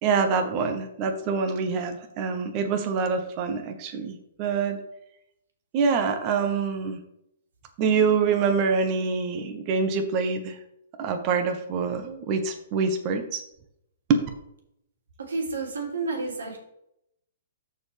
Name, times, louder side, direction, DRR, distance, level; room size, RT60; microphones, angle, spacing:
voice 1, 0.0-4.8 5.7-7.0 7.8-10.6 11.0-13.4 14.1-14.2, right 5 dB, 35° right, 6 dB, 1.1 m, -25 dB
voice 2, 15.2-16.6, right 3 dB, 85° right, 1 dB, 2.6 m, -30 dB
13.5 x 4.6 x 3.4 m, 0.78 s
hypercardioid pair, 140°, 0 cm